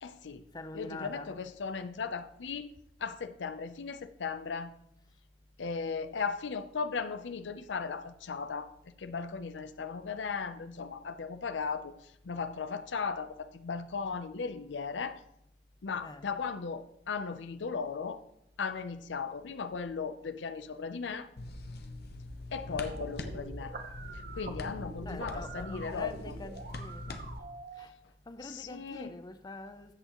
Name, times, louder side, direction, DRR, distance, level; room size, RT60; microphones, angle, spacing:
voice 1, 0.0-0.4 0.7-2.7 3.0-4.7 5.6-8.7 9.0-11.9 12.2-15.2 15.8-18.2 18.6-21.3 22.5-23.7 24.3-26.3 28.4-29.1, left 5 dB, 90° left, 0.6 m, -37 dB
voice 2, 0.5-1.3 16.0-16.2 22.6-22.9 25.1-27.3 27.7-27.9 28.3-29.9, left 2 dB, 20° left, 0.6 m, -45 dB
sound 1, 21.4-27.4, left 2 dB, 60° left, 0.8 m, -42 dB
sound 2, 22.8-27.8, right 3 dB, 55° right, 0.9 m, -46 dB
13.5 x 7.9 x 3.0 m
head